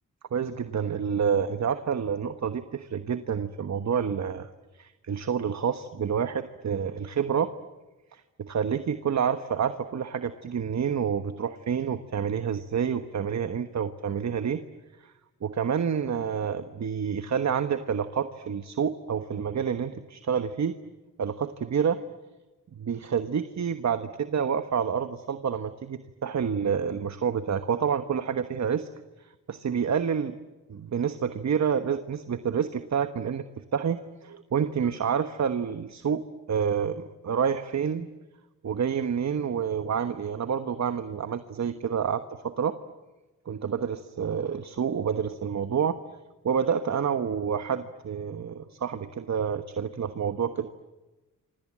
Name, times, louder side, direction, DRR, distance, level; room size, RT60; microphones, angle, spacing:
voice 1, 0.3-7.5 8.1-14.6 15.0-15.1 15.4-20.7 21.2-22.0 22.7-28.9 29.2-30.3 30.7-33.5 33.7-38.1 38.6-42.8 43.4-46.0 46.4-50.7, right 7 dB, 55° right, 10 dB, 1.3 m, -28 dB
28.5 x 26.0 x 7.5 m, 1.1 s
cardioid pair, 60°, 33 cm